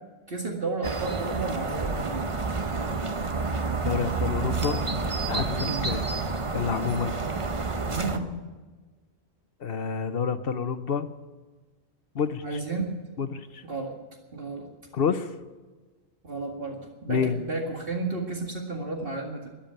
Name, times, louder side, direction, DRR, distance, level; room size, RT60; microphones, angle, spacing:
voice 1, 0.3-2.5 5.6-5.8 7.8-8.3 12.4-12.9 13.6-13.9 14.3-14.7 16.2-19.5, right 3 dB, 55° right, 0 dB, 2.2 m, -32 dB
sound 1, 0.8-8.2, right 3 dB, 30° right, 0.9 m, -29 dB
voice 2, 3.8-4.8 5.3-6.0 6.5-7.2 9.6-11.1 12.1-12.6 13.2-13.6 14.9-15.3 17.1-17.4, left 6 dB, 60° left, 11 dB, 1.0 m, -28 dB
14.0 x 10.0 x 8.9 m, 1.3 s
omnidirectional pair, 1.1 m